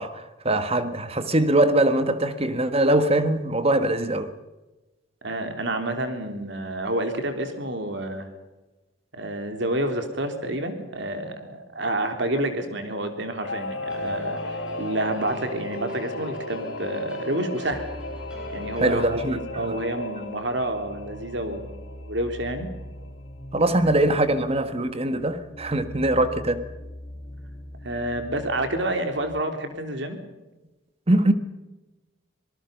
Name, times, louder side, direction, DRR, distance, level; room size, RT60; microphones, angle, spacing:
voice 1, 0.0-4.3 18.8-19.8 23.5-26.6 31.1-31.3, right 1 dB, 30° right, 1.6 m, -22 dB
voice 2, 5.2-8.3 9.1-17.8 18.5-22.7 23.7-24.0 27.8-30.2, right 1 dB, 65° right, 3.5 m, -29 dB
Singing / Musical instrument, 13.4-23.5 23.8-23.9, left 2 dB, 70° left, 2.3 m, -36 dB
sound 1, 13.9-19.1, right 1 dB, 5° right, 5.6 m, -41 dB
sound 2, 17.7-29.4, equal, 25° left, 2.4 m, -42 dB
26.0 x 19.5 x 5.4 m
head